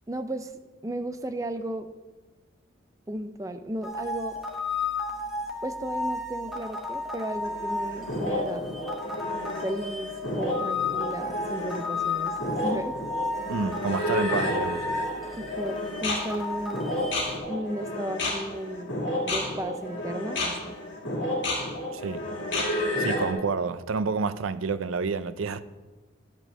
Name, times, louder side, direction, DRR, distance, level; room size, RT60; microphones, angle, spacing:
voice 1, 0.1-0.5 0.8-1.9 3.1-4.4 5.6-8.7 9.6-12.3 12.6-13.0 15.4-17.1 17.5-18.9 19.2-20.8, right 1 dB, 15° right, 0.5 m, -34 dB
sound 1, 3.8-17.4, left 3 dB, ahead, 0.9 m, -33 dB
sound 2, 7.4-23.3, left 1 dB, 60° left, 2.5 m, -31 dB
voice 2, 13.5-14.8 21.9-22.2 23.0-25.6, right 4 dB, 85° right, 0.5 m, -29 dB
10.5 x 5.2 x 6.4 m
head